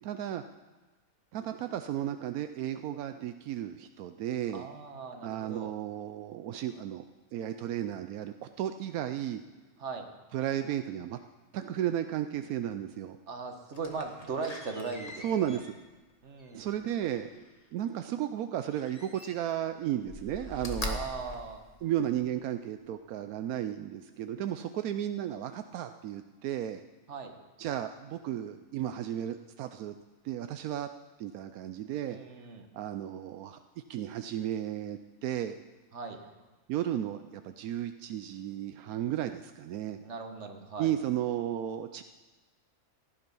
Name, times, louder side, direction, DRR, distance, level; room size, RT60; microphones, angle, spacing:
voice 1, 0.0-0.4 1.3-4.7 5.2-7.0 7.3-9.4 10.3-11.2 11.5-13.2 15.2-15.8 16.5-17.4 17.7-21.0 21.8-26.8 27.6-29.9 30.2-30.9 31.2-32.2 32.7-33.6 33.9-35.6 36.7-40.0 40.8-42.0, right 11 dB, 85° right, 9 dB, 1.1 m, -34 dB
voice 2, 4.5-5.7 9.8-10.1 13.3-15.6 16.2-16.6 20.8-21.6 27.1-27.3 32.1-32.7 35.9-36.2 40.0-40.9, right 4 dB, 55° right, 5 dB, 1.6 m, -39 dB
Slam, 13.7-17.6 18.7-19.6 20.0-22.3 22.8-22.9, left 2 dB, 25° left, 1.4 m, -43 dB
16.0 x 11.5 x 5.4 m, 1.3 s
omnidirectional pair, 1.5 m